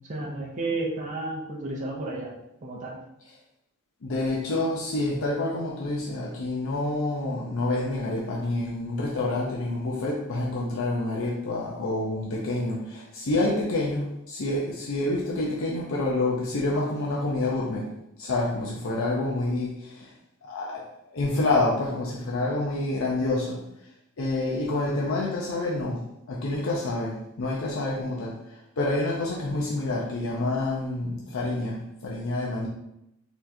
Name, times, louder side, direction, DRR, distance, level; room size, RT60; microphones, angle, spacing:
voice 1, 0.1-3.0, right 2 dB, 35° right, -2 dB, 0.5 m, -32 dB
voice 2, 4.0-17.8 18.2-20.1 20.4-23.6 24.2-32.7, left 2 dB, 65° left, -3 dB, 0.6 m, -28 dB
4.0 x 2.9 x 2.6 m, 0.83 s
head